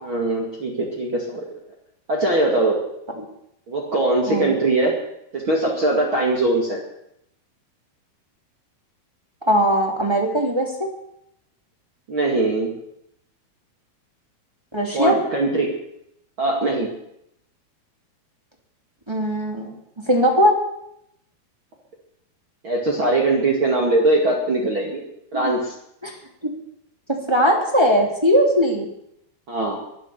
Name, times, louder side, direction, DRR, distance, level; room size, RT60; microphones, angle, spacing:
voice 1, 0.0-1.4 2.1-2.8 3.7-5.0 5.3-6.8 12.1-12.8 14.9-15.7 16.4-16.9 22.6-25.0 25.3-25.7 29.5-29.8, right 2 dB, 35° right, -1 dB, 2.5 m, -21 dB
voice 2, 9.5-10.9 14.7-15.2 19.1-19.7 20.0-20.6 25.3-25.5 26.0-26.1 26.4-26.5 27.1-28.9, equal, 10° right, -1 dB, 2.0 m, -19 dB
22.0 x 8.3 x 7.0 m, 0.76 s
omnidirectional pair, 4.5 m